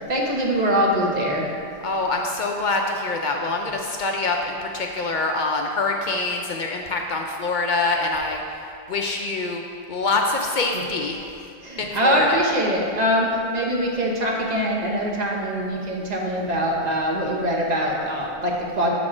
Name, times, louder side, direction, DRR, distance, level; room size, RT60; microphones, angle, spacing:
voice 1, 0.1-1.5 11.6-18.9, equal, 40° right, -2 dB, 1.0 m, -23 dB
voice 2, 1.8-9.6 9.9-11.2 11.8-12.4, left 3 dB, 55° left, 2 dB, 0.6 m, -25 dB
7.4 x 4.1 x 4.8 m, 2.5 s
omnidirectional pair, 1.1 m